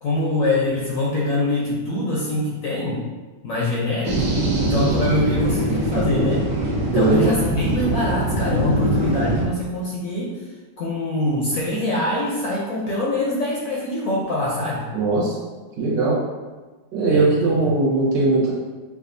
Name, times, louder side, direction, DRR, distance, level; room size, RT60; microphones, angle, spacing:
voice 1, 0.0-3.0 3.4-6.4 6.8-10.3 10.8-14.8 17.1-17.6, left 2 dB, 65° left, -5 dB, 0.8 m, -24 dB
sound 1, 4.0-9.4, right 1 dB, 60° right, 1.3 m, -22 dB
voice 2, 6.9-7.3 14.9-15.4 15.8-16.2 16.9-18.5, right 3 dB, 80° right, -6 dB, 1.7 m, -19 dB
4.9 x 2.3 x 2.6 m, 1.3 s
omnidirectional pair, 1.9 m